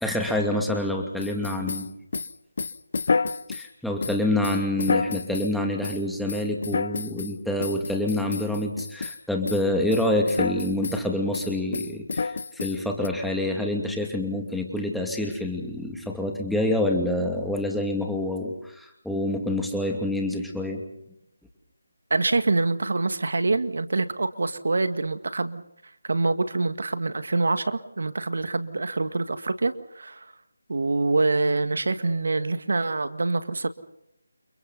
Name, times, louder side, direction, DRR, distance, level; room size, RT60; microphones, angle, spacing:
voice 1, 0.0-1.9 3.5-20.8, left 1 dB, ahead, 1 dB, 2.6 m, -27 dB
sound 1, 1.2-3.7 4.0-5.5 5.8-6.0 6.3-7.3 7.6-9.2 9.5-9.6 9.9-11.0 11.3-13.1, left 4 dB, 50° left, 1.2 m, -29 dB
voice 2, 22.1-25.6 26.0-30.3 30.7-33.7, right 3 dB, 65° right, 10 dB, 1.9 m, -25 dB
30.0 x 29.0 x 4.2 m, 0.78 s
figure-of-eight pair, 160°, 0 cm